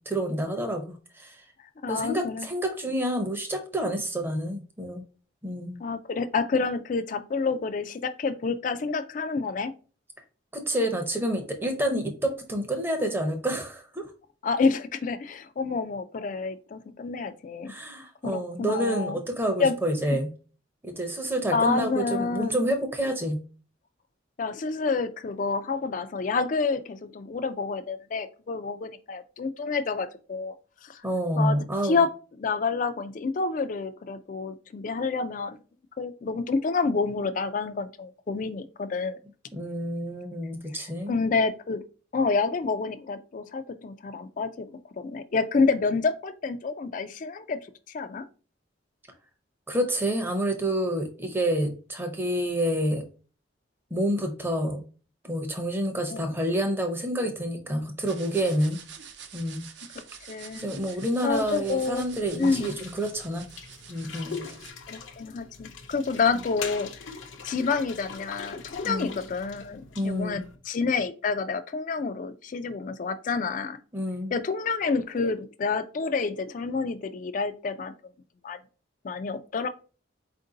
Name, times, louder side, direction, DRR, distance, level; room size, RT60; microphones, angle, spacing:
voice 1, 0.1-1.4 1.9-5.0 5.4-5.8 10.5-14.0 17.7-20.3 20.8-23.4 31.0-32.0 39.5-41.1 49.7-53.0 53.9-54.8 55.2-58.8 59.3-59.7 60.5-63.5 63.9-64.5 68.8-69.1 70.0-70.4 73.9-74.3, right 1 dB, 10° right, 5 dB, 0.6 m, -28 dB
voice 2, 1.8-2.5 5.8-9.7 14.4-17.7 18.2-19.2 19.6-19.7 20.1-20.2 21.5-22.6 24.4-30.5 30.8-31.0 31.4-31.6 31.8-32.1 32.4-35.6 36.0-39.2 41.1-41.8 42.1-47.6 47.9-48.2 56.1-56.3 60.3-60.7 61.2-62.0 62.4-62.8 64.9-66.9 67.4-73.8 74.3-77.9 78.4-78.6 79.0-79.7, left 4 dB, 40° left, 11 dB, 0.3 m, -28 dB
sound 1, 58.1-64.7, right 7 dB, 60° right, 0.6 m, -47 dB
sound 2, 61.3-70.6, left 5 dB, 75° left, 0.6 m, -42 dB
4.4 x 2.6 x 3.8 m, 0.37 s
head